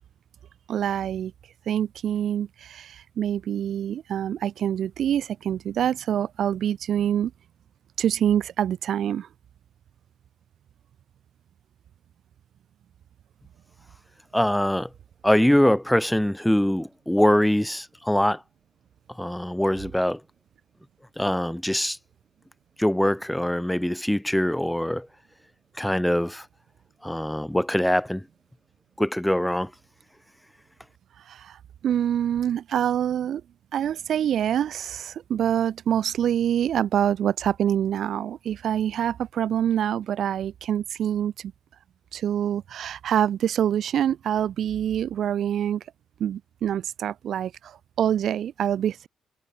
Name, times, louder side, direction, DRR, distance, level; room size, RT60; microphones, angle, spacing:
voice 1, 0.7-1.3 1.7-7.3 8.0-9.3 31.2-33.4 33.7-41.5 42.1-45.8 46.2-49.1, right 10 dB, 65° right, 1.3 m, -26 dB
voice 2, 14.3-14.9 15.2-18.4 19.2-20.2 21.2-22.0 22.8-25.1 25.8-26.4 27.0-28.2 29.0-29.7, left 1 dB, 5° left, 4.4 m, -23 dB
cardioid pair, 90°, 0 cm